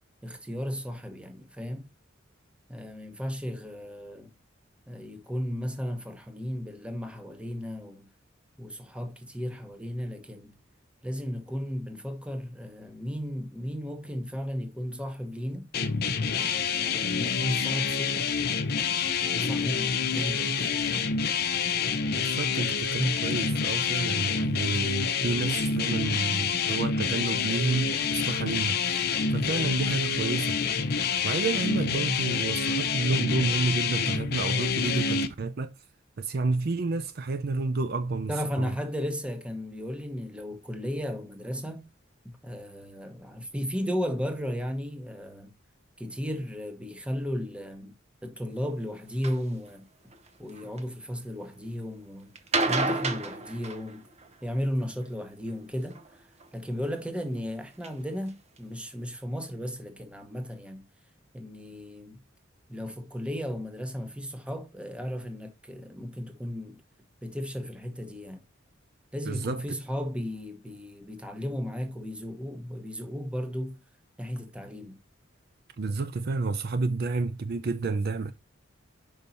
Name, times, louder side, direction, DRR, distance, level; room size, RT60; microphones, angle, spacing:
voice 1, 0.2-1.9 2.7-4.3 4.9-8.1 8.6-10.6 11.0-15.7 16.3-18.2 19.2-21.1 38.3-41.9 42.2-45.5 46.0-47.9 48.2-49.8 50.4-52.3 52.7-54.1 54.4-56.3 56.5-60.9 61.3-62.2 62.7-66.8 67.2-68.4 69.1-73.8 74.2-75.0, equal, 5° right, 1.1 m, -35 dB
sound 1, 15.7-35.3, left 5 dB, 50° left, 0.7 m, -27 dB
voice 2, 22.1-28.8 29.3-30.6 31.2-35.7 36.2-38.3 38.6-38.7 69.3-69.6 75.8-78.3, right 3 dB, 50° right, 0.5 m, -30 dB
sound 2, 49.2-49.4 50.1-50.8 52.4-54.3 55.9-56.5 57.2-57.3 57.8-57.9 58.3-58.4 58.6-58.7, right 3 dB, 35° right, 0.9 m, -30 dB
5.4 x 5.4 x 4.2 m
head